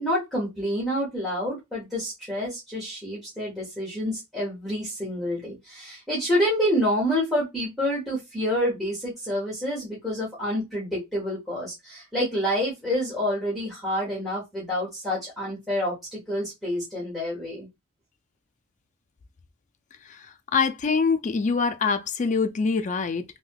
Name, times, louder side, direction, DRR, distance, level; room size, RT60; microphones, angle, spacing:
voice 1, 0.0-17.7, equal, ahead, 1.3 m, -28 dB
voice 2, 20.1-23.2, left 5 dB, 35° left, 0.4 m, -25 dB
3.4 x 2.7 x 2.3 m
head